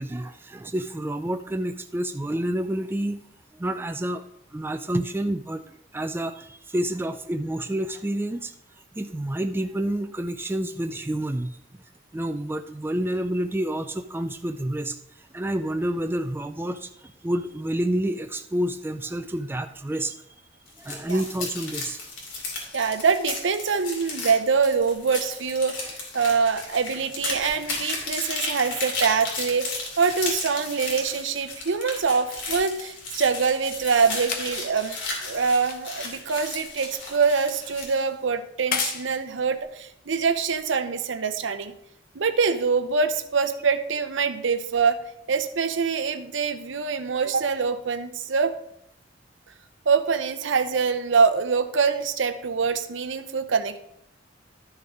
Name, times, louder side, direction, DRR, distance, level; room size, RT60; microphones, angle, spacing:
voice 1, 0.0-3.2 3.5-4.2 4.5-5.6 5.9-8.5 8.9-11.6 12.1-15.0 15.3-16.9 17.2-20.2 20.8-22.0 25.8-25.9, right 1 dB, 10° right, 8 dB, 0.4 m, -28 dB
sound 1, 20.7-38.0, left 3 dB, 80° left, 2.8 m, -34 dB
voice 2, 22.7-35.0 35.2-41.7 42.1-48.5 49.9-53.8, right 5 dB, 75° right, 10 dB, 0.7 m, -24 dB
sound 2, 32.4-41.0 41.8-41.9, left 6 dB, 50° left, 0.9 m, -37 dB
12.0 x 6.3 x 3.6 m, 0.75 s
head